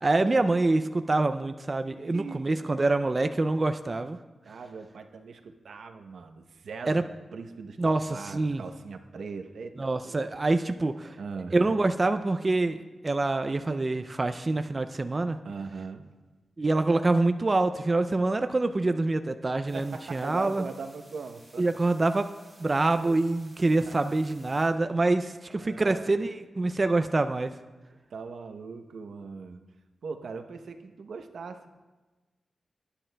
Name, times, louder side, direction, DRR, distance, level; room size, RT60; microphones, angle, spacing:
voice 1, 0.0-4.2 6.9-7.0 7.8-8.6 9.8-11.2 11.5-15.4 16.6-20.7 21.6-22.3 22.6-27.5, right 2 dB, 30° right, 8 dB, 0.4 m, -26 dB
voice 2, 1.9-2.5 4.4-10.2 11.2-11.6 15.4-16.1 19.7-21.7 23.9-24.1 25.5-26.1 28.1-29.6 30.0-31.8, right 4 dB, 85° right, 7 dB, 0.7 m, -40 dB
sound 1, 19.7-24.7, right 1 dB, 5° right, 4.2 m, -57 dB
19.0 x 9.9 x 2.2 m, 1.2 s
wide cardioid pair, 125°, 0 cm